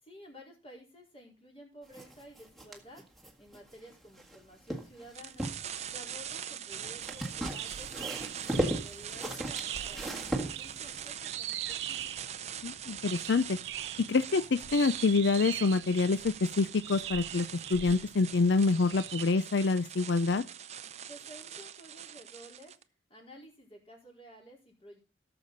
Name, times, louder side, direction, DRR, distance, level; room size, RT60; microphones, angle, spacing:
voice 1, 0.0-3.0 3.4-12.1 21.1-22.7 23.1-25.0, equal, 30° left, 0 dB, 4.5 m, -53 dB
sound 1, 1.9-4.4 4.7-5.7 7.0-11.1, right 1 dB, ahead, 1.8 m, -36 dB
sound 2, 5.1-22.8, right 9 dB, 35° right, 0.6 m, -43 dB
sound 3, 6.7-19.2, right 11 dB, 80° right, 0.5 m, -42 dB
voice 2, 12.6-13.6 14.1-20.4, left 3 dB, 70° left, 12 dB, 0.5 m, -27 dB
17.5 x 6.9 x 4.0 m, 0.30 s
head